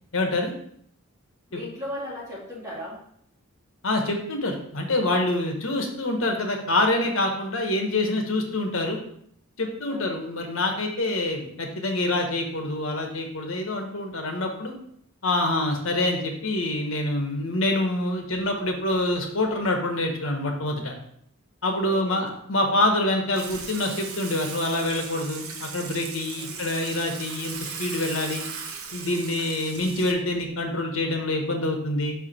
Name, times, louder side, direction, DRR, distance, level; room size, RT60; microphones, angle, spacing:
voice 1, 0.1-0.5 1.5-1.6 3.8-9.0 9.6-14.7 15.2-20.9 21.6-28.4 28.9-32.1, left 1 dB, 65° left, 2 dB, 1.2 m, -26 dB
voice 2, 1.5-3.0 9.9-10.1 21.8-22.3 26.3-26.6, left 1 dB, 15° right, -6 dB, 2.1 m, -37 dB
Water / Water tap faucet / Sink (filling or washing), 23.3-30.1, right 5 dB, 80° right, 0.9 m, -37 dB
5.6 x 4.9 x 4.3 m, 0.68 s
head